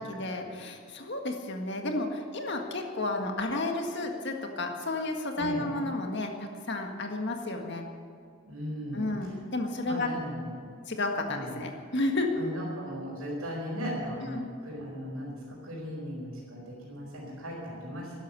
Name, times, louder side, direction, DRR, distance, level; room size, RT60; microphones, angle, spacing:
voice 1, 0.0-7.9 8.9-10.1 10.9-12.4 14.3-14.5, left 2 dB, 55° left, 3 dB, 1.7 m, -32 dB
voice 2, 5.4-5.7 8.5-9.3 9.9-10.7 11.3-11.6 12.3-18.1, equal, 75° right, -7 dB, 4.6 m, -37 dB
13.0 x 11.0 x 9.6 m, 2.2 s
head